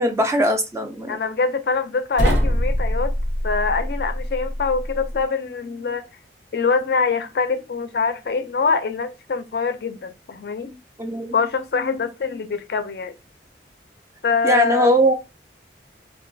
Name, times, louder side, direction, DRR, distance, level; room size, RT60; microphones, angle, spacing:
voice 1, 0.0-1.2 11.0-11.3 14.4-15.1, equal, 15° right, 0.3 m, -20 dB
voice 2, 1.1-3.1 3.4-6.0 6.5-10.8 11.3-13.1 14.2-14.9, left 5 dB, 60° left, 0.4 m, -24 dB
sound 1, 2.2-5.2, equal, 90° right, 0.8 m, -23 dB
2.9 x 2.2 x 2.6 m
head